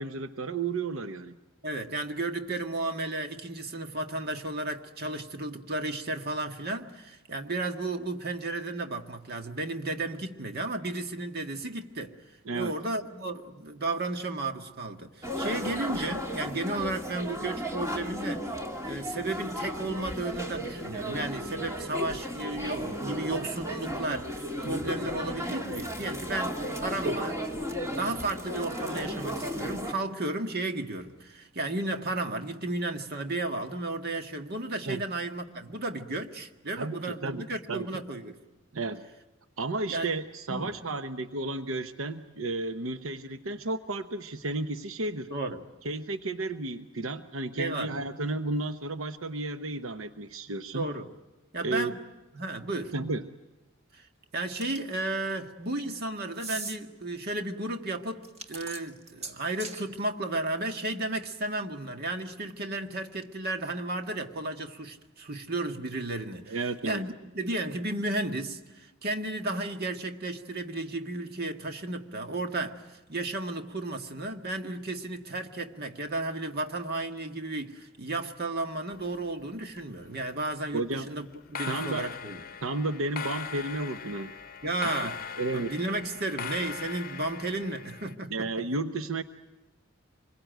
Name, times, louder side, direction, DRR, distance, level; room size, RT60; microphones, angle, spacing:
voice 1, 0.0-1.4 12.4-12.7 29.5-29.6 34.9-35.0 36.8-38.0 38.7-39.0 39.6-45.3 45.8-50.9 51.6-51.9 52.9-53.2 66.5-67.0 80.7-81.1 81.7-82.1 82.6-84.3 85.4-85.8 88.3-89.2, right 2 dB, 85° right, 0.9 m, -32 dB
voice 2, 1.6-12.2 12.5-18.5 18.8-38.4 39.9-40.1 40.5-40.8 45.3-45.7 47.6-48.0 50.7-51.1 51.5-52.0 52.3-52.9 53.9-54.1 54.3-66.6 66.8-82.4 84.6-85.2 85.5-88.5, right 2 dB, 50° right, 1.7 m, -33 dB
sound 1, 15.2-29.9, equal, 15° right, 2.3 m, -34 dB
sound 2, 54.6-55.0 56.3-56.8 58.2-59.8, right 4 dB, 30° right, 1.7 m, -39 dB
sound 3, 78.9-79.8 80.0-80.5 81.3-88.1, left 6 dB, 45° left, 0.9 m, -40 dB
26.0 x 22.5 x 9.2 m
head